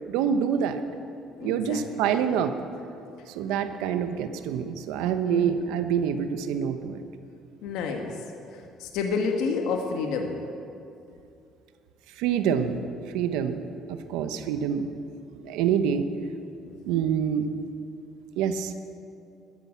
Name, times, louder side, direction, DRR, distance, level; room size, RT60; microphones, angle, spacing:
voice 1, 0.1-0.8 1.4-2.5 3.3-7.0 12.2-12.8 13.1-14.9 15.3-16.0 16.8-17.5 18.4-18.7, right 8 dB, 85° right, 9 dB, 1.0 m, -26 dB
voice 2, 1.4-1.9 5.2-5.6 7.6-8.2 8.5-10.4 16.6-16.8, left 5 dB, 80° left, 3 dB, 1.6 m, -30 dB
14.0 x 10.5 x 8.6 m, 2.6 s
cardioid pair, 105°, 0 cm